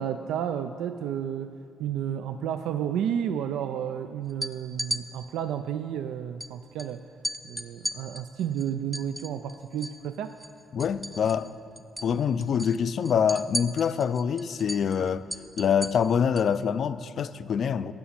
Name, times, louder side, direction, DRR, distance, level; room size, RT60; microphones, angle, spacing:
voice 1, 0.0-1.5 1.8-7.0 7.4-10.4, right 9 dB, 85° right, 0.3 m, -31 dB
sound 1, 4.3-5.0 6.4-6.5 6.8-6.9 7.2-10.0 10.3-11.5 11.8-12.1 12.4-16.5, right 1 dB, 10° right, 0.7 m, -35 dB
voice 2, 10.7-11.5 12.0-15.3 15.6-17.9, left 7 dB, 60° left, 0.4 m, -25 dB
11.5 x 5.9 x 8.7 m
cardioid pair, 90°, 0 cm